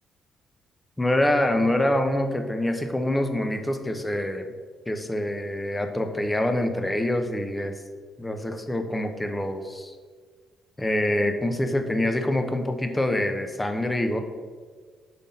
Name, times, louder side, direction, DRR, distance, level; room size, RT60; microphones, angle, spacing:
voice 1, 1.0-4.5 4.9-7.7 8.2-10.0 10.8-14.2, left 1 dB, 10° left, 6 dB, 0.7 m, -25 dB
5.8 x 3.5 x 5.3 m, 1.5 s
cardioid pair, 90°, 0 cm